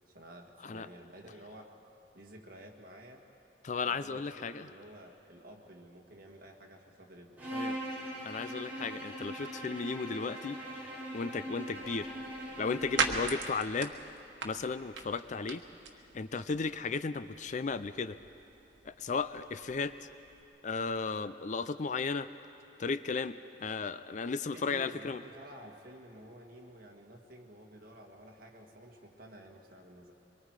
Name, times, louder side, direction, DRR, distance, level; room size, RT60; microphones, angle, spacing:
voice 1, 0.1-1.7 2.1-3.2 3.9-7.4 24.5-30.1, right 1 dB, 50° right, 1 dB, 2.0 m, -52 dB
voice 2, 3.6-4.7 7.5-7.8 8.2-10.6 11.1-12.1 12.6-13.9 14.4-15.6 16.1-18.2 18.8-19.9 20.6-22.3 22.8-25.2, left 4 dB, 40° left, 13 dB, 0.4 m, -35 dB
Bowed string instrument, 7.4-13.4, right 1 dB, 10° right, 4.1 m, -41 dB
sound 1, 11.7-20.4, right 4 dB, 85° right, 1.4 m, -40 dB
24.0 x 23.5 x 4.8 m, 2.7 s
head